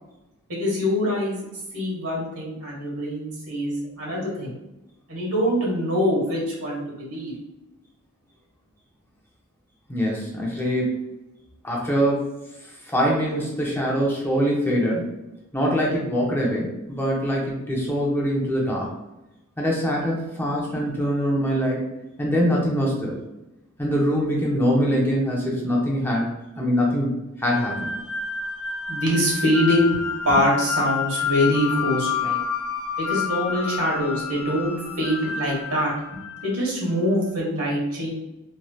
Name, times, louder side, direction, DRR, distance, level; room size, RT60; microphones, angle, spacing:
voice 1, 0.5-1.4 1.7-4.6 5.1-7.3 28.9-32.4 33.0-38.1, equal, 70° right, -4 dB, 1.3 m, -24 dB
voice 2, 9.9-11.0 11.6-12.2 12.6-15.1 15.5-18.9 19.6-21.9 22.2-23.2 23.8-26.3 26.6-27.1 27.4-27.9, equal, 10° left, -3 dB, 0.6 m, -23 dB
sound 1, 27.5-36.7, left 6 dB, 90° left, 0.5 m, -29 dB
3.1 x 2.7 x 2.3 m, 0.95 s
head